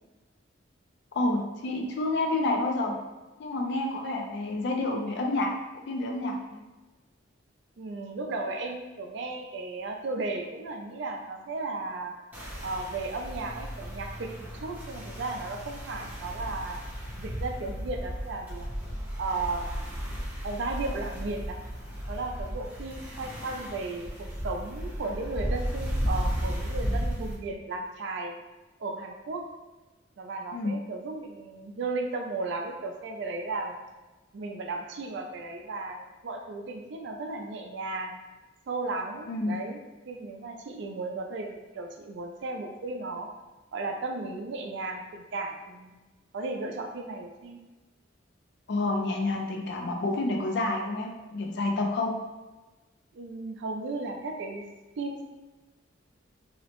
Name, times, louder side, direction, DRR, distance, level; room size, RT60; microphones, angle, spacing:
voice 1, 1.1-3.0 3.4-5.5 5.9-6.6 30.5-30.8 39.3-39.6 48.7-52.1, left 2 dB, 60° left, 2 dB, 0.4 m, -29 dB
voice 2, 7.8-12.1 12.6-16.8 17.2-18.7 19.2-19.7 20.4-21.6 22.1-28.3 28.8-29.4 30.2-33.8 34.3-38.2 38.7-39.8 40.1-43.3 43.7-45.9 46.3-47.6 53.1-54.7 55.0-55.2, right 3 dB, 65° right, 3 dB, 0.4 m, -35 dB
sound 1, 12.3-27.4, equal, 10° right, 0.6 m, -34 dB
2.8 x 2.0 x 2.8 m, 1.2 s
head